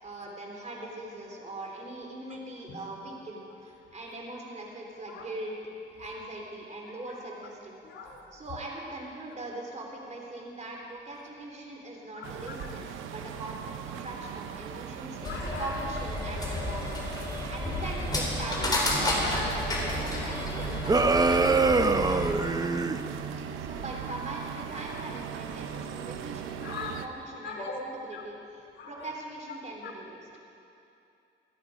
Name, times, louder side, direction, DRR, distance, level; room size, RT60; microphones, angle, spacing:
voice 1, 0.0-5.6 5.9-7.8 8.3-15.2 15.6-23.2 23.6-30.3, right 2 dB, 35° right, 0 dB, 3.6 m, -41 dB
voice 2, 7.8-8.2 12.2-12.7 15.2-15.8 18.6-19.4 26.6-27.0 27.4-27.7 28.1-28.2 28.8-29.1 29.8-29.9, left 4 dB, 70° left, 0 dB, 3.3 m, -41 dB
sound 1, 12.2-27.1, right 8 dB, 90° right, 0.8 m, -39 dB
sound 2, 15.2-22.3, left 1 dB, 20° left, 4.2 m, -31 dB
sound 3, 20.9-23.0, right 3 dB, 20° right, 0.7 m, -23 dB
27.0 x 10.0 x 5.1 m, 2.7 s
cardioid pair, 90°, 20 cm